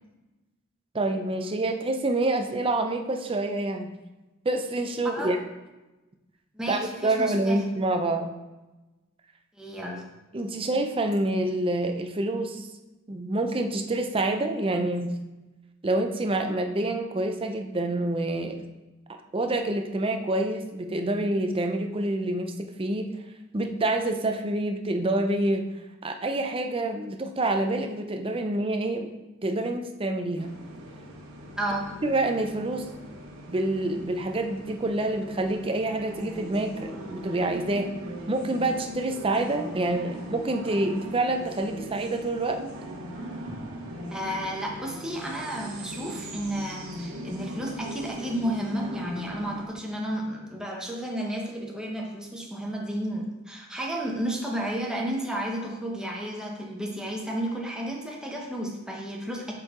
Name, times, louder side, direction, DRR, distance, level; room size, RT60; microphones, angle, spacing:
voice 1, 0.9-3.9 4.4-5.4 6.7-8.3 10.3-12.7 13.1-15.2 15.8-18.6 19.3-22.5 22.8-23.1 23.5-25.7 26.0-29.1 29.4-30.5 32.0-32.9 33.5-37.9 38.3-42.6, right 2 dB, 25° right, 5 dB, 0.5 m, -27 dB
voice 2, 6.5-7.6 9.6-10.1 31.6-31.9 44.1-59.5, right 1 dB, 5° right, -2 dB, 1.0 m, -32 dB
sound 1, 30.4-49.7, right 1 dB, 85° right, 1.3 m, -40 dB
7.4 x 4.5 x 3.7 m, 1.1 s
head